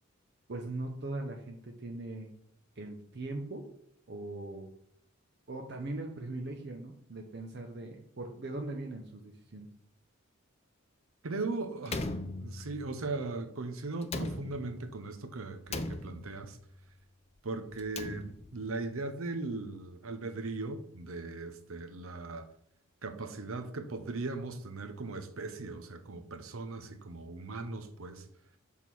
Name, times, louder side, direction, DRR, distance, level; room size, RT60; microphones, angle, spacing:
voice 1, 0.5-2.3 2.8-3.6 4.1-4.7 5.5-9.7, right 2 dB, 50° right, 0.7 m, -40 dB
voice 2, 11.2-12.1 12.4-16.6 17.4-22.5 23.0-28.2, right 3 dB, 85° right, 0.8 m, -38 dB
Slam, 11.9-13.0 14.0-14.9 15.7-16.6 17.7-18.7, left 2 dB, 30° left, 0.4 m, -39 dB
6.4 x 3.7 x 6.0 m
head